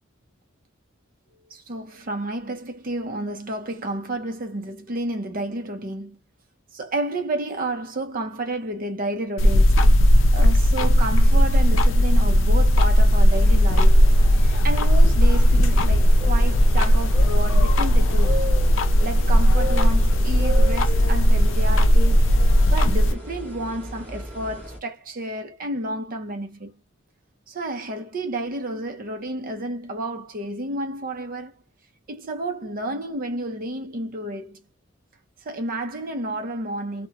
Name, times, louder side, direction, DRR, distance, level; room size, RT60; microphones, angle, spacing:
voice 1, 1.5-6.2 6.7-9.8 10.3-14.1 14.3-18.5 19.0-22.2 22.7-26.7 27.5-31.5 32.1-34.6 35.4-37.1, right 1 dB, 45° right, 0.6 m, -31 dB
sound 1, 9.4-23.1, equal, 70° left, 0.5 m, -17 dB
sound 2, 13.3-24.8, right 1 dB, 10° left, 1.1 m, -35 dB
2.8 x 2.1 x 2.4 m
head